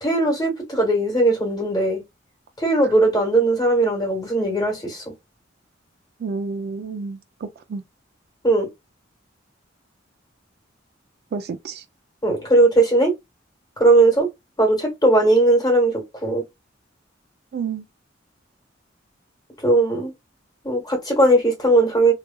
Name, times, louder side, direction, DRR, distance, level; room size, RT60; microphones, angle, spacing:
voice 1, 0.0-2.0 2.6-5.0 8.4-8.7 12.2-13.1 13.8-14.3 14.6-16.4 19.6-20.1 20.6-22.1, right 2 dB, 20° left, 1.3 m, -18 dB
voice 2, 6.2-7.8 11.3-11.8 17.5-17.8, right 5 dB, 55° right, 0.3 m, -30 dB
3.0 x 2.3 x 2.2 m
head